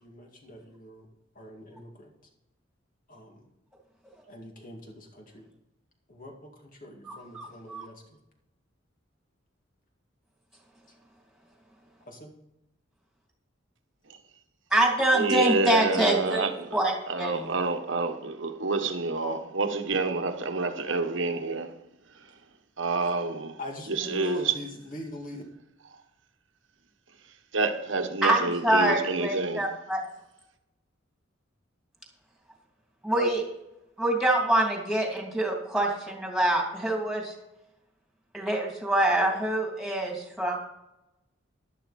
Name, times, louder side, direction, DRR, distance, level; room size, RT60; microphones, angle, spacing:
voice 1, 0.0-1.1 1.4-2.1 3.1-3.4 4.3-5.4 6.1-6.3 6.8-7.9 12.1-12.3 23.6-25.4, left 2 dB, 45° left, 2.3 m, -42 dB
voice 2, 7.0-7.9 14.7-16.4 16.7-16.9 17.2-17.5 28.2-30.0 33.0-33.4 34.0-37.3 38.3-40.6, right 1 dB, ahead, 2.8 m, -25 dB
voice 3, 15.1-16.8 17.1-21.7 22.8-23.6 23.9-24.6 27.5-29.6, right 3 dB, 70° right, 1.3 m, -28 dB
11.5 x 11.0 x 4.2 m
head